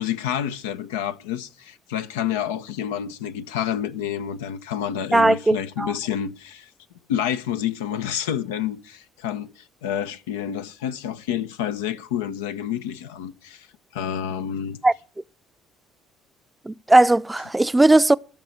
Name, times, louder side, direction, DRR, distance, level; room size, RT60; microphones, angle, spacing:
voice 1, 0.0-6.7 7.1-13.7 13.9-14.8, left 9 dB, 85° left, 0.7 m, -29 dB
voice 2, 5.1-5.9 14.8-14.9 16.7-18.2, right 2 dB, 15° right, 0.6 m, -17 dB
13.5 x 5.9 x 9.3 m
hypercardioid pair, 55°, 0 cm